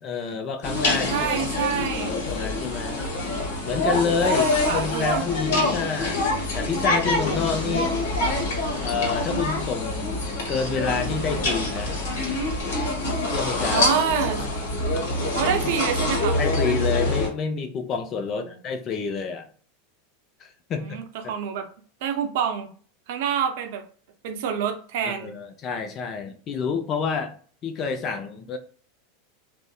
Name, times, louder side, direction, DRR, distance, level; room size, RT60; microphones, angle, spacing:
voice 1, 0.0-3.0 3.6-6.2 6.6-7.9 8.8-10.2 10.5-11.9 13.3-13.9 16.4-19.5 20.4-20.8 21.2-21.3 25.0-27.3 27.6-28.6, left 5 dB, 40° left, 7 dB, 0.5 m, -28 dB
sound 1, 0.6-17.3, left 2 dB, 65° left, 1.0 m, -25 dB
voice 2, 1.1-2.2 4.3-5.2 5.7-5.8 7.6-8.1 13.7-14.4 15.3-16.4 18.5-18.6 20.8-21.7 22.0-22.7 23.1-23.8 24.2-25.3, right 8 dB, 60° right, 5 dB, 0.5 m, -27 dB
2.6 x 2.1 x 2.3 m, 0.42 s
hypercardioid pair, 90°, 0 cm